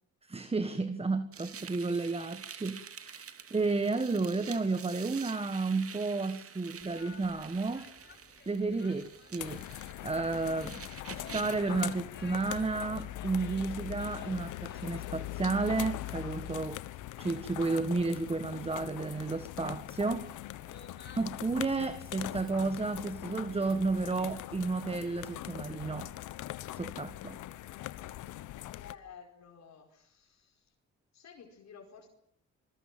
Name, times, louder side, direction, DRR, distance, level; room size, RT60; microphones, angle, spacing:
voice 1, 0.3-7.9 8.4-9.7 10.0-10.8 11.1-16.8 17.2-20.3 21.2-26.1 26.8-27.4, right 3 dB, 20° right, 1.5 m, -32 dB
sound 1, 1.3-11.7, right 7 dB, 50° right, 2.4 m, -48 dB
sound 2, 6.8-21.4, left 4 dB, 35° left, 5.2 m, -56 dB
sound 3, 9.4-28.9, left 15 dB, 85° left, 1.2 m, -42 dB
voice 2, 28.5-30.7 31.1-32.1, left 7 dB, 60° left, 4.9 m, -53 dB
27.0 x 21.0 x 7.6 m
cardioid pair, 90°, 30 cm